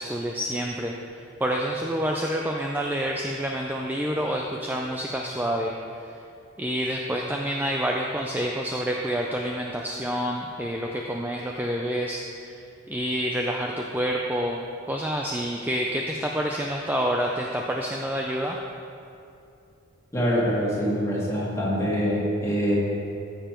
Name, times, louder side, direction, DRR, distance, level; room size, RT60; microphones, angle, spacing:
voice 1, 0.0-5.7 6.6-12.6 12.9-14.6 14.9-18.6, equal, 10° right, 0 dB, 0.4 m, -28 dB
voice 2, 20.1-22.8, equal, 15° left, -6 dB, 2.2 m, -24 dB
14.5 x 6.8 x 4.4 m, 2.6 s
head